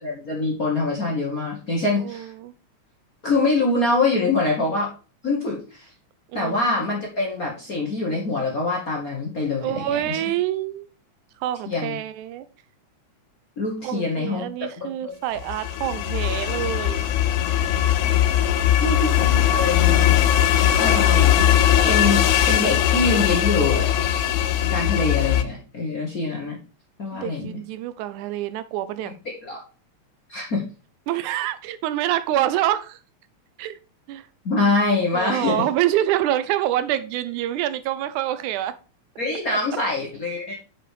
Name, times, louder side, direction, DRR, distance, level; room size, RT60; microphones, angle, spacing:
voice 1, 0.0-2.3 3.2-4.9 5.2-5.9 6.3-10.2 11.7-12.0 13.6-14.5 14.8-15.1 18.0-18.1 18.8-20.1 20.8-21.4 21.9-23.9 24.6-26.6 27.0-27.6 29.0-29.6 30.3-30.6 34.4-35.7 39.2-40.5, left 3 dB, 50° left, 1.1 m, -24 dB
voice 2, 2.0-2.5 6.3-6.7 9.6-10.9 11.4-12.5 13.8-17.1 27.1-29.1 31.1-33.0 33.6-33.8 34.1-34.3 35.1-38.7 39.5-39.6, right 12 dB, 90° right, 2.1 m, -26 dB
sound 1, 15.4-25.4, left 11 dB, 90° left, 1.3 m, -19 dB
6.0 x 4.9 x 4.8 m
omnidirectional pair, 3.4 m